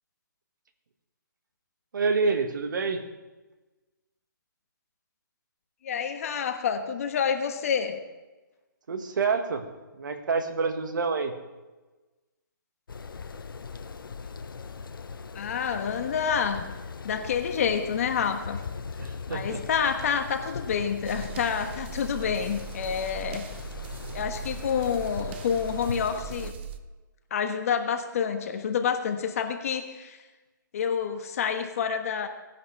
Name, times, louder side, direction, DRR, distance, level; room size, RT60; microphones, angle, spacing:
voice 1, 1.9-3.0 8.9-9.6 10.0-11.3 19.0-19.6, right 4 dB, 65° right, 6 dB, 1.8 m, -27 dB
voice 2, 5.8-8.0 15.3-16.7 17.0-18.6 19.3-23.5 24.1-26.6 27.3-30.2 30.7-32.3, left 7 dB, 45° left, 6 dB, 1.3 m, -28 dB
sound 1, 12.9-26.5, left 5 dB, 80° left, 0.8 m, -39 dB
sound 2, 21.1-26.8, right 9 dB, 30° right, 0.7 m, -40 dB
17.5 x 10.5 x 3.4 m, 1.2 s
hypercardioid pair, 155°, 11 cm